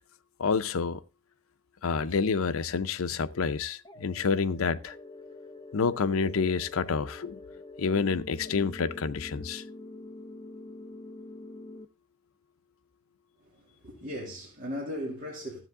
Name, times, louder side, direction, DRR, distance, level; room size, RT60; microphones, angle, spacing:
voice 1, 0.4-1.0 1.8-5.0 5.7-7.4 7.8-9.6, left 5 dB, 80° left, 0.6 m, -28 dB
sound 1, 3.8-11.8, left 2 dB, 20° left, 0.6 m, -46 dB
voice 2, 13.4-15.6, equal, 40° right, 2.7 m, -37 dB
13.0 x 7.9 x 3.6 m
head